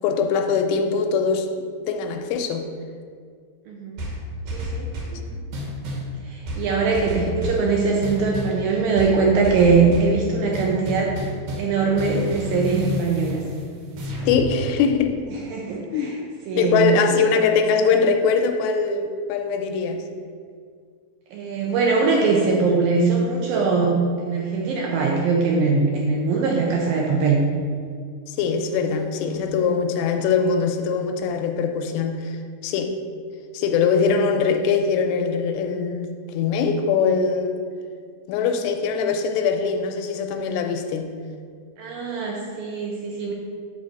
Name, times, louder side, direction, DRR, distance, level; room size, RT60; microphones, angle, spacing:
voice 1, 0.0-1.5 1.9-2.7 14.3-15.2 15.9-16.1 16.6-20.0 28.3-32.4 32.6-32.9 33.5-37.6 38.3-41.2, left 5 dB, 90° left, 5 dB, 2.8 m, -22 dB
sound 1, 4.0-5.2 5.5-6.1 6.5-7.7 8.0-8.6 9.0-10.2 10.5-14.5, left 1 dB, 65° right, 2.1 m, -30 dB
voice 2, 4.5-5.4 6.3-11.1 11.5-13.4 15.5-16.2 16.5-17.2 21.3-27.4 41.8-43.3, right 4 dB, 80° right, -1 dB, 2.0 m, -21 dB
8.1 x 4.1 x 6.4 m, 2.1 s
omnidirectional pair, 4.9 m